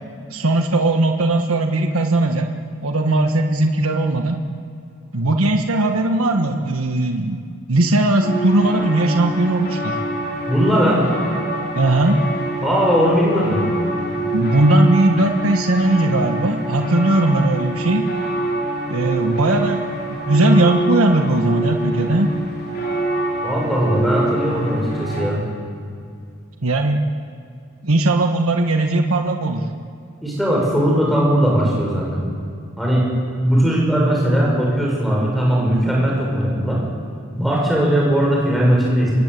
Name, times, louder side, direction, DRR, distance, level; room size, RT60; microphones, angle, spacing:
voice 1, 0.3-2.5 2.8-4.4 5.1-7.4 7.7-10.0 11.7-12.2 14.3-18.1 18.9-22.3 26.6-27.0 27.8-29.7, right 2 dB, 75° right, 4 dB, 1.4 m, -18 dB
sound 1, 8.2-25.3, right 2 dB, 45° left, 5.4 m, -26 dB
voice 2, 10.5-11.0 12.6-13.6 23.4-25.4 30.2-32.2 32.8-33.0 33.4-36.8 37.3-39.1, equal, ahead, -3 dB, 6.8 m, -18 dB
26.0 x 21.5 x 8.4 m, 2.3 s
head